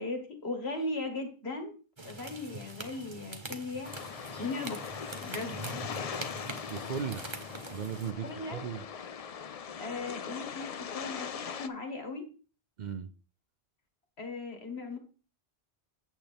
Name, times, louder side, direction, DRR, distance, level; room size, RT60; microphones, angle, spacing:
voice 1, 0.0-1.8 2.0-4.9 5.2-5.7 8.2-8.6 9.8-12.3 14.2-15.0, left 3 dB, 80° left, 2.1 m, -38 dB
sound 1, 2.0-8.1, right 2 dB, 30° right, 1.0 m, -43 dB
sound 2, 3.8-11.7, left 7 dB, 45° left, 0.5 m, -41 dB
voice 2, 6.7-7.2 7.7-8.8 12.8-13.1, right 7 dB, 55° right, 0.6 m, -36 dB
9.0 x 7.3 x 3.4 m
omnidirectional pair, 1.1 m